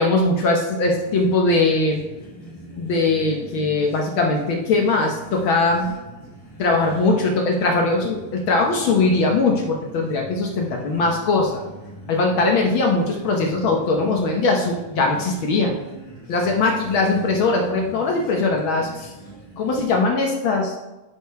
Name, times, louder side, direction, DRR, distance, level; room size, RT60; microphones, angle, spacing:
voice 1, 0.0-2.0 2.8-5.9 6.6-11.6 12.1-15.8 16.3-19.1 19.6-20.8, left 3 dB, 70° left, 1 dB, 1.2 m, -20 dB
sound 1, 0.6-20.1, right 1 dB, 15° left, 1.5 m, -42 dB
9.5 x 5.2 x 4.6 m, 1.0 s
omnidirectional pair, 3.3 m